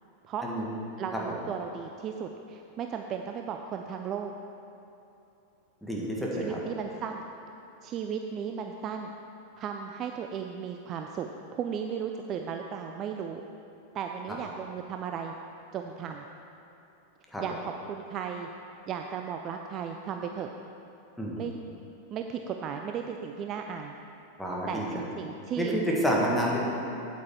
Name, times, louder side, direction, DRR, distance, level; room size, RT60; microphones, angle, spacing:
voice 1, 1.0-4.3 6.4-7.2 7.8-9.1 9.6-13.4 13.9-15.3 15.7-16.3 17.4-18.5 18.9-20.5 21.4-21.5 22.1-23.9 24.7-25.7, right 7 dB, 35° right, 4 dB, 0.4 m, -35 dB
voice 2, 5.8-6.6 17.3-17.4 21.2-21.4 24.4-24.9 25.6-26.6, equal, ahead, -4 dB, 1.7 m, -28 dB
8.6 x 8.2 x 4.5 m, 2.9 s
figure-of-eight pair, 90°, 0 cm